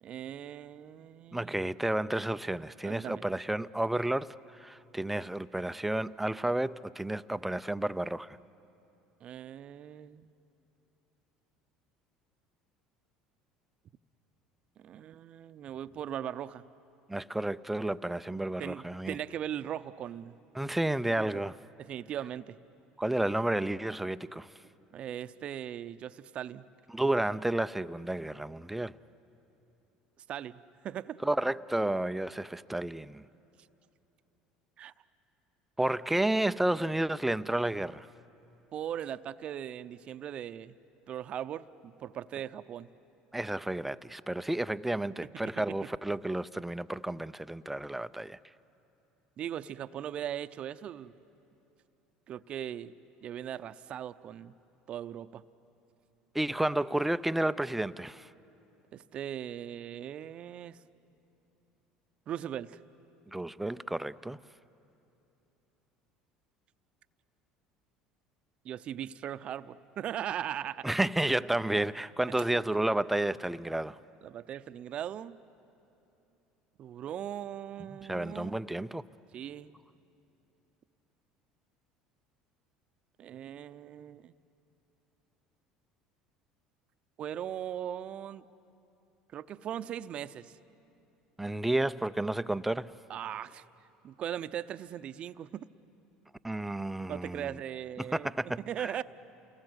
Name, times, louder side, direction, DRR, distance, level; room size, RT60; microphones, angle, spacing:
voice 1, 0.0-1.7 2.8-3.2 9.2-10.3 14.8-16.6 18.6-20.4 21.1-21.3 21.8-22.6 24.9-26.6 30.3-31.2 34.8-34.9 38.7-40.8 41.1-42.9 49.4-51.1 52.3-52.9 53.2-54.5 54.9-55.4 58.9-60.8 62.3-62.8 68.6-70.9 74.2-75.4 76.8-78.6 79.3-79.8 83.2-84.3 87.2-88.4 89.3-90.5 93.1-93.6 94.0-95.6 97.1-98.3 98.7-99.0, right 10 dB, 50° right, 0.6 m, -39 dB
voice 2, 1.3-8.4 17.1-19.2 20.5-21.5 23.0-24.5 26.9-28.9 31.2-33.2 35.8-38.1 43.3-48.4 56.3-58.3 63.3-64.4 70.8-74.0 78.1-79.0 91.4-93.0 96.4-97.6 98.0-98.9, right 1 dB, 5° right, 0.5 m, -31 dB
29.0 x 19.5 x 8.1 m
supercardioid pair, 90°, 2 cm